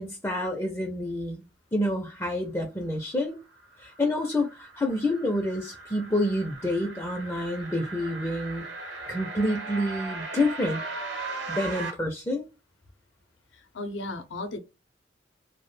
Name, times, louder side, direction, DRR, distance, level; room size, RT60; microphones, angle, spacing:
voice 1, 0.0-1.4 1.7-3.4 3.8-8.7 9.1-10.8 11.5-12.4, left 1 dB, 15° left, 0.4 m, -28 dB
sound 1, 3.6-11.9, right 3 dB, 75° right, 0.9 m, -38 dB
voice 2, 13.5-14.6, left 2 dB, 85° left, 0.5 m, -35 dB
2.2 x 2.0 x 3.1 m
head